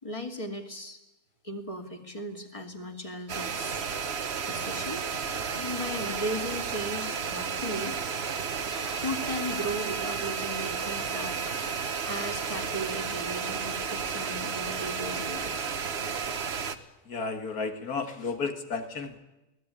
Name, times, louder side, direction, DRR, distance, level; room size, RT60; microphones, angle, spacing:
voice 1, 0.0-1.0 1.4-3.8 4.5-5.0 5.5-8.0 8.7-11.4 12.0-15.5, equal, 20° left, 5 dB, 2.6 m, -36 dB
sound 1, 3.3-16.8, right 6 dB, 45° right, 1.3 m, -32 dB
voice 2, 17.1-19.2, left 4 dB, 85° left, 7 dB, 2.5 m, -33 dB
23.0 x 18.0 x 10.0 m, 1.0 s
omnidirectional pair, 1.6 m